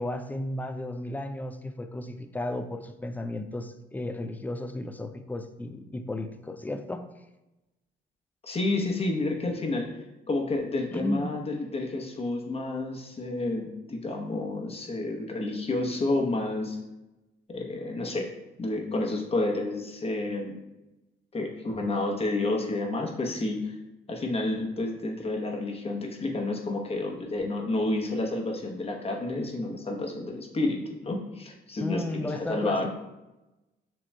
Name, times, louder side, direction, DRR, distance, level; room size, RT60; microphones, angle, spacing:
voice 1, 0.0-7.1 10.9-11.2 31.8-32.9, left 1 dB, 10° left, 8 dB, 0.3 m, -34 dB
voice 2, 8.4-9.9 10.3-16.8 17.5-18.3 18.6-20.6 21.3-23.8 24.1-32.9, left 2 dB, 30° left, 1 dB, 0.9 m, -30 dB
7.1 x 2.9 x 2.2 m, 1.0 s
cardioid pair, 90°, 20 cm